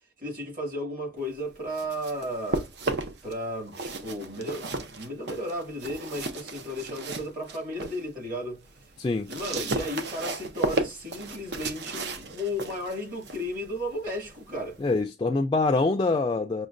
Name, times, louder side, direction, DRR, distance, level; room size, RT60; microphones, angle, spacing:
voice 1, 0.2-2.7 3.2-8.9 9.2-14.8, equal, 50° right, 2.1 m, -34 dB
sound 1, 1.5-3.3 3.7-8.0 8.4-15.0, right 3 dB, 70° right, 0.7 m, -34 dB
voice 2, 9.0-9.3 14.8-16.7, left 3 dB, 25° left, 0.3 m, -25 dB
6.0 x 2.2 x 2.5 m
head